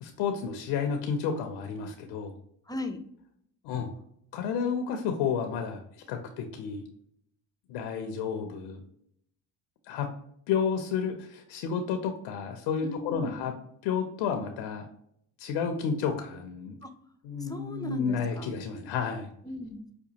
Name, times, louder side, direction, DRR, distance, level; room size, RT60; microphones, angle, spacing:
voice 1, 0.0-2.4 3.6-3.9 4.3-6.8 7.7-8.8 9.9-10.1 10.5-13.5 13.8-14.9 15.4-16.8 17.2-19.3, left 6 dB, 85° left, 5 dB, 0.6 m, -31 dB
voice 2, 2.7-3.0 12.8-13.5 16.8-16.9 17.4-18.5 19.4-19.9, left 1 dB, 10° left, 6 dB, 0.4 m, -38 dB
5.1 x 2.2 x 2.8 m, 0.70 s
supercardioid pair, 85°, 41 cm